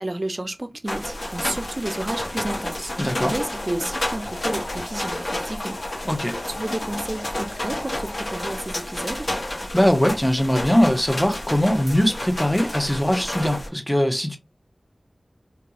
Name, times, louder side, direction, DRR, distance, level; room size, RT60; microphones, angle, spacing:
voice 1, 0.0-5.8 6.5-9.3, right 1 dB, 45° right, 0.4 m, -31 dB
sound 1, 0.9-13.7, left 1 dB, 60° left, 0.9 m, -30 dB
sound 2, 2.7-10.1, left 2 dB, 75° left, 0.4 m, -41 dB
voice 2, 3.0-3.3 6.0-6.4 9.7-14.4, equal, 5° left, 0.6 m, -21 dB
2.4 x 2.3 x 2.9 m
wide cardioid pair, 60°, 0 cm